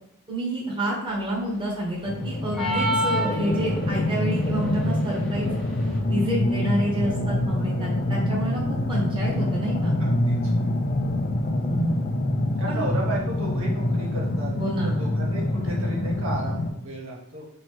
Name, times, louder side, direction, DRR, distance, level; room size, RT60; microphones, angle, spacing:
voice 1, 0.3-5.5 6.1-8.6 8.9-10.0 11.7-12.1 12.7-12.8 14.6-15.0, right 1 dB, 25° right, -4 dB, 1.1 m, -29 dB
sound 1, 2.0-16.7, left 1 dB, 40° left, 0.5 m, -25 dB
sound 2, 2.5-4.0, right 1 dB, ahead, 0.8 m, -26 dB
voice 2, 10.0-10.6 12.6-14.5 15.0-17.4, right 2 dB, 60° right, -3 dB, 0.9 m, -34 dB
3.1 x 2.9 x 4.5 m, 0.77 s
head